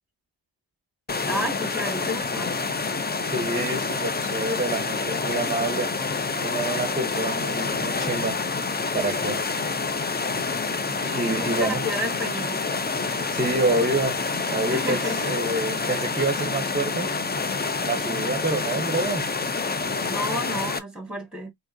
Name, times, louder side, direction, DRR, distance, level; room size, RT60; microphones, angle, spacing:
sound 1, 1.1-20.8, left 4 dB, 25° left, 0.4 m, -27 dB
voice 1, 1.3-2.6 11.0-12.6 14.7-15.2 15.8-16.0 18.0-18.4 20.0-21.5, equal, ahead, 1.7 m, -32 dB
voice 2, 3.3-5.9 6.4-8.4 8.9-9.4 10.9-11.8 13.3-14.2 14.5-17.1 17.8-19.2, right 2 dB, 20° right, 0.8 m, -27 dB
5.1 x 2.9 x 2.6 m
wide cardioid pair, 80°, 45 cm